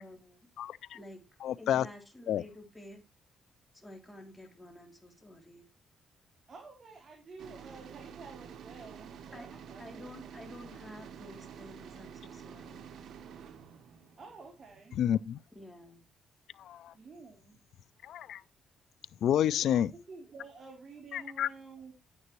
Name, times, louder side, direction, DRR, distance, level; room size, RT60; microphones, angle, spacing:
voice 1, 0.0-0.5 0.9-1.2 1.6-3.0 3.7-5.7 9.3-9.5 9.8-13.0 15.5-16.0, left 1 dB, 10° left, 3.3 m, -50 dB
voice 2, 1.4-1.9 2.3-2.4 15.0-15.4 16.6-16.9 18.0-18.4 19.2-19.9 21.1-21.5, left 10 dB, 75° left, 0.4 m, -29 dB
voice 3, 6.5-10.8 14.2-15.1 16.9-17.7 19.3-21.9, right 4 dB, 40° right, 3.2 m, -51 dB
sound 1, 7.4-15.4, right 7 dB, 70° right, 1.2 m, -49 dB
9.6 x 9.6 x 3.0 m
cardioid pair, 110°, 0 cm